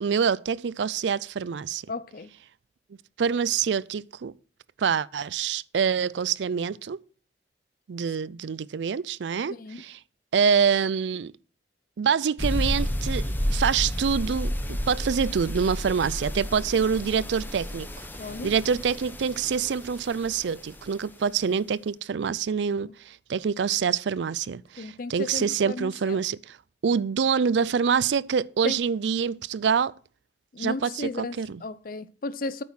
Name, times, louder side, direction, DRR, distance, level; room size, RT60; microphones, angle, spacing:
voice 1, 0.0-1.8 3.2-4.3 4.8-7.0 7.9-10.0 10.3-11.3 12.0-18.1 18.4-26.6 26.8-29.9 30.6-31.6, right 6 dB, 85° right, 0.4 m, -26 dB
voice 2, 1.9-2.3 9.6-9.8 18.2-18.5 22.8-22.9 24.8-26.2 28.6-28.8 30.5-32.6, left 3 dB, 50° left, 0.6 m, -34 dB
sound 1, 12.4-20.8, equal, 10° left, 0.9 m, -31 dB
9.1 x 7.2 x 5.7 m
head